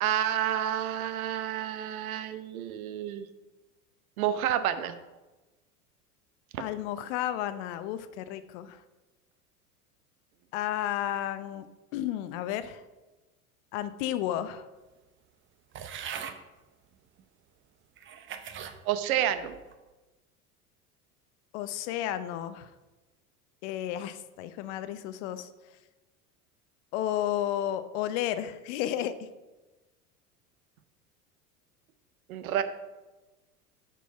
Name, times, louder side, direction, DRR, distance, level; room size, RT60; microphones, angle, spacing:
voice 1, 0.0-3.3 4.2-4.9 6.5-6.6 18.8-19.6 32.3-32.6, right 10 dB, 65° right, 11 dB, 0.9 m, -29 dB
voice 2, 6.6-8.8 10.5-11.7 11.9-12.8 13.7-14.7 21.5-22.7 23.6-25.5 26.9-29.3, left 11 dB, 50° left, 13 dB, 0.7 m, -32 dB
sound 1, 15.7-16.4 17.2-17.3 18.0-18.8 19.3-19.7, right 8 dB, 25° right, 0.7 m, -40 dB
7.0 x 6.1 x 5.6 m, 1.1 s
figure-of-eight pair, 80°, 46 cm